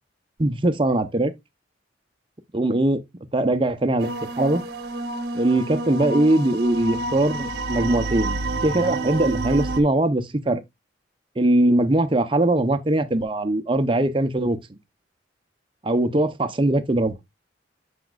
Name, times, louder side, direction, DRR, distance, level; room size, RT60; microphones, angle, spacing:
voice 1, 0.4-1.3 2.5-3.0 3.3-4.1 4.4-4.6 5.3-10.6 11.4-14.6 15.8-17.2, right 1 dB, 25° right, 0.6 m, -21 dB
sound 1, 4.0-9.8, right 2 dB, 55° right, 1.0 m, -29 dB
8.3 x 5.1 x 2.3 m
head